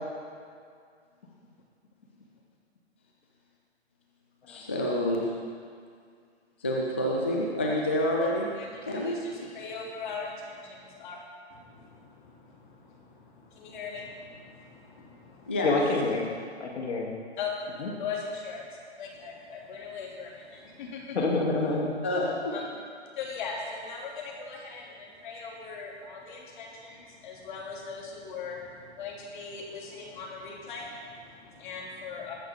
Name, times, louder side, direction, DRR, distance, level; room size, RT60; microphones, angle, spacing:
voice 1, 4.5-5.3 6.6-8.5 8.9-9.6 15.5-15.8 22.0-22.6, left 1 dB, 10° left, -2 dB, 0.3 m, -28 dB
voice 2, 8.2-11.2 11.5-15.6 17.4-17.6 18.0-21.2 22.5-22.6 23.2-32.3, left 5 dB, 45° left, -2 dB, 3.3 m, -40 dB
voice 3, 15.6-16.2 16.6-17.1 17.8-17.9 21.1-21.9, left 3 dB, 75° left, -2 dB, 3.4 m, -27 dB
21.0 x 8.5 x 3.9 m, 2.2 s
hypercardioid pair, 150°, 34 cm